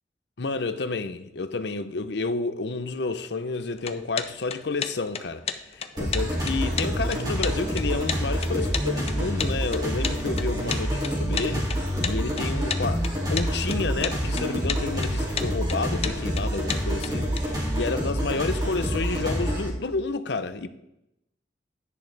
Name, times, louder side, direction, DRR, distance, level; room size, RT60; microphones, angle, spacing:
voice 1, 0.4-5.4 5.7-20.7, left 3 dB, 65° left, 0.7 m, -30 dB
sound 1, 3.8-17.4, left 7 dB, 35° left, 0.6 m, -33 dB
sound 2, 6.0-19.7, equal, 20° right, 2.5 m, -27 dB
11.0 x 10.5 x 3.4 m
head